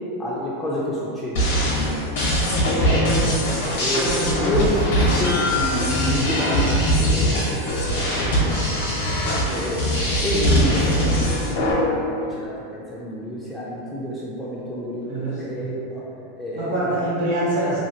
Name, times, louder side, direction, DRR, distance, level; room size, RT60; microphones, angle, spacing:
voice 1, 0.2-2.1 3.6-8.6 9.5-9.9 10.2-16.0 16.4-16.8, equal, 10° left, -8 dB, 0.4 m, -29 dB
sound 1, 1.4-11.7, equal, 75° left, 0.9 m, -21 dB
voice 2, 1.9-2.8 15.1-15.6 16.5-17.8, right 1 dB, 70° right, -9 dB, 1.3 m, -26 dB
2.7 x 2.4 x 2.9 m, 2.6 s
hypercardioid pair, 120°, 0 cm